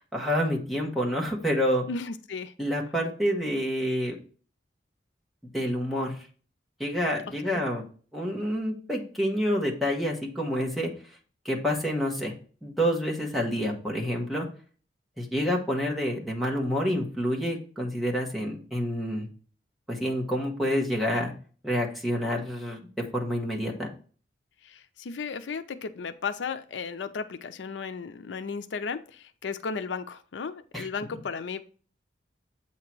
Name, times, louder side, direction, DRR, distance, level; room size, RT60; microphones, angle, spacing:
voice 1, 0.0-1.9 2.6-4.2 5.5-6.1 6.8-7.8 8.1-10.9 11.4-12.3 12.6-14.4 15.2-19.3 19.9-21.3 21.6-22.8 23.1-23.9 30.7-30.9, equal, ahead, -2 dB, 1.3 m, -28 dB
voice 2, 1.9-2.5 7.5-7.6 24.6-31.6, left 5 dB, 80° left, 11 dB, 0.5 m, -35 dB
8.0 x 2.9 x 6.0 m, 0.41 s
head